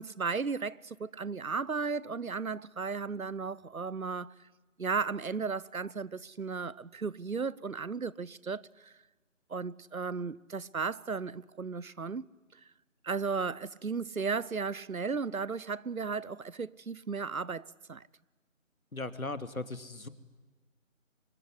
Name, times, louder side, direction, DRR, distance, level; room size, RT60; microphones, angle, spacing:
voice 1, 0.0-4.3 4.8-8.9 9.5-12.2 13.0-18.0, right 5 dB, 90° right, 1.0 m, -35 dB
voice 2, 18.9-20.1, left 2 dB, 90° left, 2.5 m, -38 dB
25.0 x 23.5 x 9.9 m
figure-of-eight pair, 165°, 41 cm